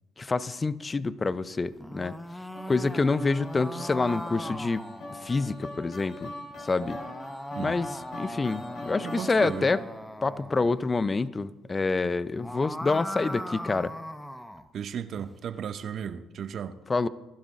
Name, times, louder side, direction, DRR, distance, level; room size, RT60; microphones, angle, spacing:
voice 1, 0.2-2.2 2.7-6.3 6.6-7.0 7.6-9.8 10.2-13.9 16.9-17.1, left 3 dB, 30° left, 0.6 m, -27 dB
sound 1, 1.7-5.6 6.5-10.8 12.2-14.7, equal, 5° left, 0.9 m, -39 dB
sound 2, 2.5-10.0, left 2 dB, 60° left, 4.2 m, -43 dB
voice 2, 9.0-9.7 14.7-16.7, right 8 dB, 55° right, 0.8 m, -35 dB
28.5 x 12.0 x 2.6 m
hypercardioid pair, 50°, 0 cm